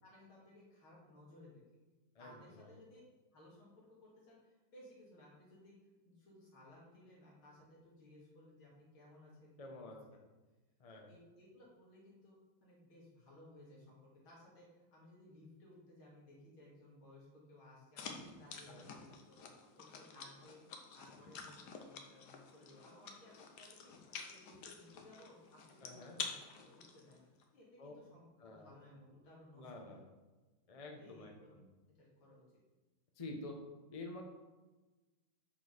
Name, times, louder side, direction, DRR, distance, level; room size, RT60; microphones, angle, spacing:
voice 1, 0.0-1.6 2.2-3.0 3.3-5.8 6.0-9.9 10.9-19.5 19.8-20.6 20.9-24.0 24.3-27.3 27.5-30.0 30.9-31.5 32.0-32.4, left 1 dB, 80° left, -5 dB, 3.1 m, -60 dB
voice 2, 2.1-2.7 9.6-10.0 10.8-11.1 18.7-18.9 25.8-26.2 27.8-27.9 28.4-28.7 29.5-30.0 30.7-31.7 33.2-33.5 33.9-34.2, left 2 dB, 30° left, 2 dB, 0.6 m, -49 dB
sound 1, 18.0-27.4, left 5 dB, 65° left, 1.3 m, -49 dB
8.9 x 4.5 x 5.1 m, 1.2 s
omnidirectional pair, 2.2 m